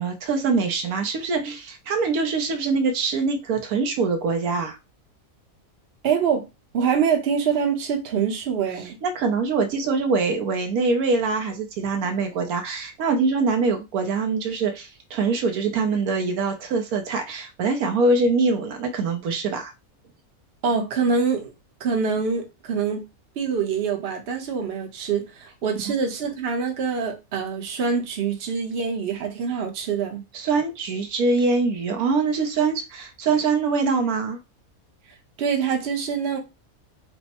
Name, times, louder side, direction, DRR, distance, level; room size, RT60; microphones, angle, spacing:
voice 1, 0.0-4.8 9.0-19.7 30.3-34.4, right 4 dB, 75° right, 1.1 m, -23 dB
voice 2, 6.0-6.5 6.7-9.0 20.6-21.5 21.8-23.0 23.4-30.2 35.4-36.4, right 6 dB, 50° right, 0.9 m, -25 dB
3.4 x 2.0 x 4.1 m
omnidirectional pair, 1.6 m